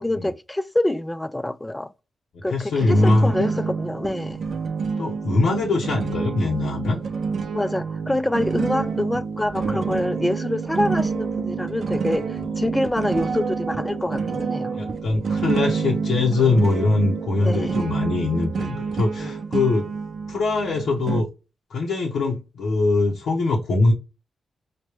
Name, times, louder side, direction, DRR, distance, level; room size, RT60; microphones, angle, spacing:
voice 1, 0.0-1.9 2.4-4.4 7.5-14.8 17.4-17.8 19.2-19.3, left 1 dB, 15° left, 0.3 m, -26 dB
voice 2, 2.5-3.5 5.0-7.0 9.7-10.0 14.7-19.9 20.3-21.3 21.7-23.9, left 3 dB, 90° left, 0.8 m, -22 dB
sound 1, 2.8-21.2, right 5 dB, 65° right, 0.5 m, -28 dB
5.0 x 2.2 x 3.0 m
cardioid pair, 70°, 0 cm